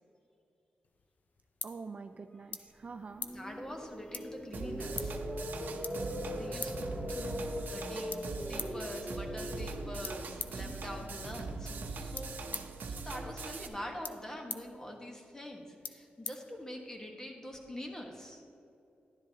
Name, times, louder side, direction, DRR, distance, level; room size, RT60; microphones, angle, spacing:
sound 1, 0.8-17.1, left 5 dB, 60° left, 0.5 m, -48 dB
voice 1, 1.6-3.3 7.0-7.4, right 4 dB, 45° right, 8 dB, 0.3 m, -46 dB
sound 2, 2.8-12.9, equal, ahead, 1.0 m, -42 dB
voice 2, 3.3-5.2 6.4-12.3 12.9-18.4, left 1 dB, 15° left, 1 dB, 1.4 m, -45 dB
sound 3, 4.5-13.7, right 3 dB, 75° right, 0.7 m, -41 dB
11.5 x 10.5 x 2.9 m, 2.8 s
cardioid pair, 90°, 3 cm